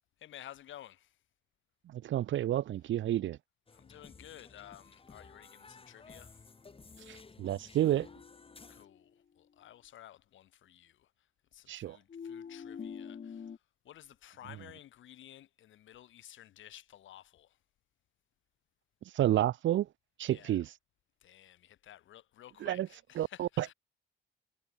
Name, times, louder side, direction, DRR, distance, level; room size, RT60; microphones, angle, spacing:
voice 1, 0.2-1.1 3.7-6.4 8.7-11.1 11.5-13.5 13.9-17.5 20.3-20.6 21.2-23.7, left 12 dB, 75° left, 5.3 m, -53 dB
voice 2, 1.9-3.4 7.1-8.1 11.7-12.0 19.1-19.9 20.2-20.7 22.6-22.9 23.1-23.7, right 12 dB, 70° right, 1.4 m, -30 dB
sound 1, 3.7-8.8, left 4 dB, 30° left, 3.3 m, -55 dB
sound 2, 7.8-9.1 12.1-13.6, left 7 dB, 45° left, 4.2 m, -46 dB
cardioid pair, 90°, 20 cm